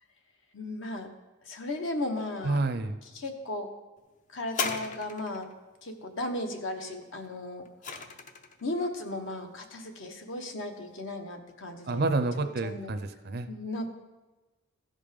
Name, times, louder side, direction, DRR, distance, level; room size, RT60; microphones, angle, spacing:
voice 1, 0.5-1.1 1.4-2.6 3.0-3.7 4.3-5.5 5.8-7.6 8.6-12.1 12.6-12.9 13.5-14.0, left 2 dB, 65° left, 4 dB, 1.1 m, -35 dB
voice 2, 2.4-3.0 11.9-13.5, right 2 dB, 50° right, 9 dB, 0.5 m, -29 dB
sound 1, 4.5-5.5 7.2-8.6 9.4-9.5, left 5 dB, 35° left, 0.6 m, -36 dB
15.5 x 5.2 x 5.1 m, 1.2 s
head